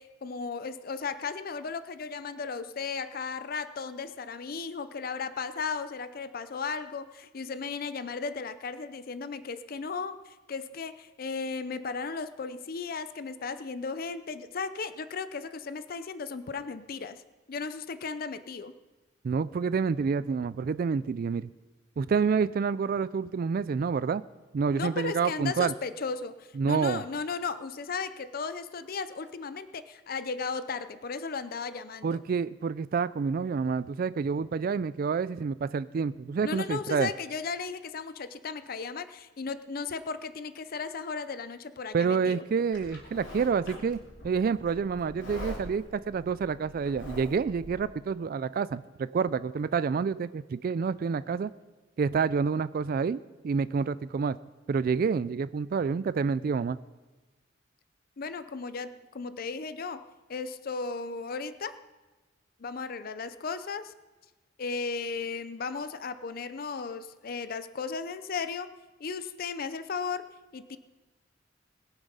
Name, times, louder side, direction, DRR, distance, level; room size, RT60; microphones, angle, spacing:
voice 1, 0.0-17.2 17.5-18.7 24.7-32.2 36.4-42.4 58.2-61.8 62.6-63.9 64.6-68.7 69.0-70.3 70.5-70.8, left 5 dB, 50° left, 12 dB, 0.5 m, -35 dB
voice 2, 19.2-21.5 22.0-24.2 24.5-25.7 26.6-27.0 32.0-37.1 41.9-44.0 44.2-51.5 52.0-53.2 53.4-54.4 54.7-56.8, right 5 dB, 50° right, 16 dB, 0.3 m, -28 dB
Livestock farm animals working animals, 42.7-47.8, left 1 dB, 85° left, 3.3 m, -44 dB
21.0 x 7.2 x 5.5 m, 1.2 s
head